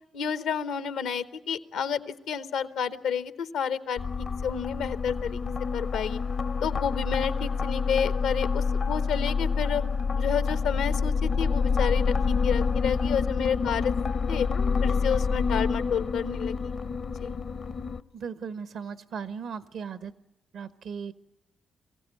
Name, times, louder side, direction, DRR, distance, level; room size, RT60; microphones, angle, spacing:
voice 1, 0.1-6.2 6.6-9.8 10.2-13.9 14.3-14.5 14.8-16.8 17.2-17.4, left 7 dB, 85° left, 13 dB, 0.9 m, -30 dB
sound 1, 4.0-18.0, left 5 dB, 55° left, 0.6 m, -27 dB
voice 2, 18.1-20.1 20.5-21.1, right 6 dB, 75° right, 13 dB, 0.9 m, -37 dB
22.5 x 15.5 x 9.4 m, 1.1 s
supercardioid pair, 60°, 0 cm